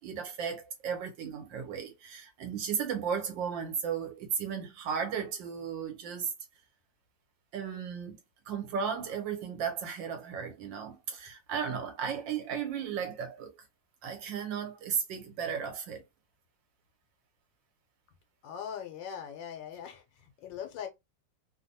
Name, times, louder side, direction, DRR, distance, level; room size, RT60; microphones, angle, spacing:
voice 1, 0.0-6.3 7.5-8.2 8.5-13.5 14.0-16.0, right 7 dB, 80° right, 1.7 m, -35 dB
voice 2, 18.4-20.0 20.4-20.9, left 8 dB, 90° left, 1.4 m, -40 dB
3.4 x 2.2 x 2.7 m
omnidirectional pair, 2.0 m